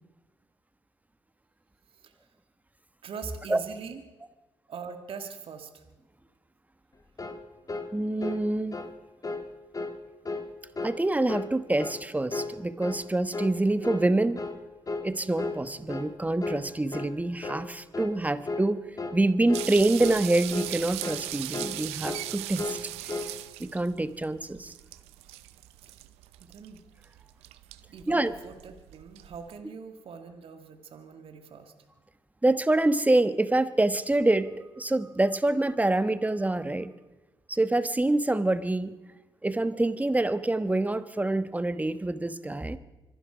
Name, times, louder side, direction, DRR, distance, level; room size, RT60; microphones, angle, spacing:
voice 1, 3.0-4.0 4.7-5.8 26.5-26.8 27.9-31.7, right 6 dB, 65° right, 6 dB, 1.9 m, -42 dB
sound 1, 7.2-7.4 7.7-7.9 8.2-8.4 8.7-8.9 9.2-9.5 9.7-10.0 10.3-10.5 10.8-11.0 11.3-11.5 11.8-12.0 12.3-12.5 12.8-13.0 13.3-13.6 13.8-14.1 14.4-14.6 14.9-15.1 15.4-15.6 15.9-16.1 16.4-16.6 16.9-17.1 17.4-17.7 17.9-18.2 18.5-18.7 19.0-19.2 19.5-19.7 20.0-20.2 20.5-20.8 21.0-21.2 21.5-21.8 22.0-22.3 22.6-22.8 23.1-23.3, left 3 dB, 35° left, 2.0 m, -34 dB
voice 2, 7.9-8.8 10.8-14.4 15.0-18.8 19.1-23.2 23.6-24.7 28.1-28.3 32.4-34.5 34.8-36.9 37.5-38.9 39.4-42.8, right 2 dB, 15° right, 12 dB, 1.2 m, -26 dB
sound 2, 19.5-29.6, right 16 dB, 90° right, 0.6 m, -39 dB
25.5 x 11.5 x 5.0 m, 1.1 s
supercardioid pair, 55°, 10 cm